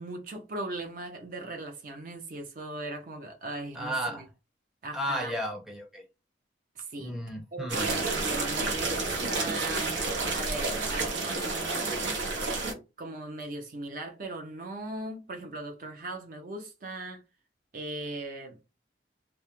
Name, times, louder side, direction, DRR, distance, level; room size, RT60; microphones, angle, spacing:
voice 1, 0.0-4.3 4.8-5.4 6.8-7.2 7.5-10.0 10.3-12.0 13.0-17.2 17.7-18.6, right 2 dB, 50° right, 0.5 m, -38 dB
voice 2, 3.7-4.2 4.9-6.0 7.0-8.0, equal, ahead, 0.6 m, -33 dB
sound 1, 7.7-12.7, right 3 dB, 85° right, 0.8 m, -30 dB
2.3 x 2.1 x 2.9 m
head